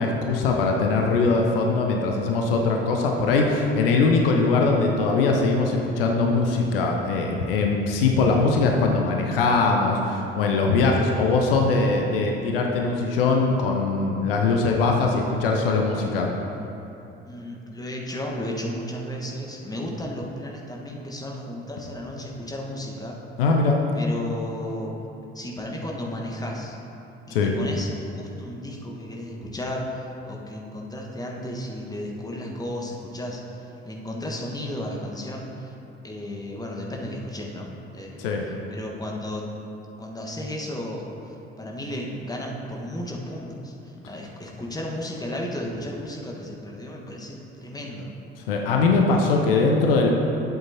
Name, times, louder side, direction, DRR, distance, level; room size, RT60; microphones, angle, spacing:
voice 1, 0.0-16.3 23.4-23.8 27.3-27.6 38.2-38.5 48.5-50.1, left 3 dB, 70° left, 1 dB, 0.7 m, -21 dB
voice 2, 17.2-23.2 23.9-24.9 25.3-26.7 27.3-27.9 28.1-35.7 36.0-38.3 38.7-39.4 40.0-41.1 41.6-48.1, left 1 dB, 15° left, -1 dB, 1.3 m, -34 dB
11.5 x 7.8 x 2.8 m, 2.9 s
figure-of-eight pair, 50°, 29 cm